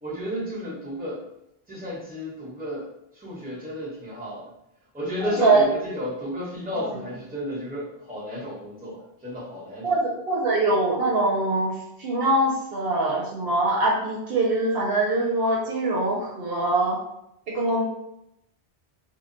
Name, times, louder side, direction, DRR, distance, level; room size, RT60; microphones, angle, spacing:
voice 1, 0.0-1.2 1.7-2.9 3.1-4.5 4.9-9.9, equal, 10° right, -6 dB, 0.8 m, -32 dB
voice 2, 5.2-5.7 6.7-7.0 9.8-17.0 17.5-17.8, right 2 dB, 65° right, -4 dB, 0.8 m, -23 dB
2.2 x 2.1 x 3.8 m, 0.82 s
omnidirectional pair, 1.1 m